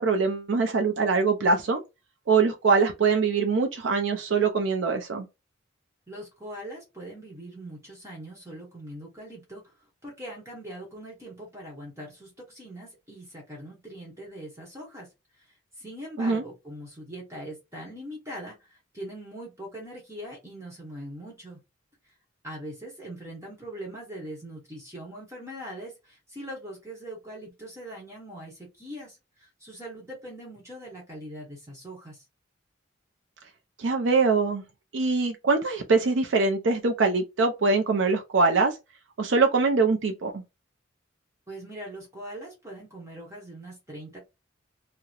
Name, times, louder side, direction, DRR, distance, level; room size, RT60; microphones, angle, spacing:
voice 1, 0.0-1.8 2.3-5.3 16.2-16.4 33.8-34.6 34.9-38.7 39.2-40.4, right 4 dB, 75° right, 0.5 m, -23 dB
voice 2, 6.1-15.1 15.4-15.5 15.8-21.6 22.4-32.2 41.5-44.2, right 1 dB, 15° right, 1.0 m, -41 dB
2.8 x 2.0 x 2.3 m
head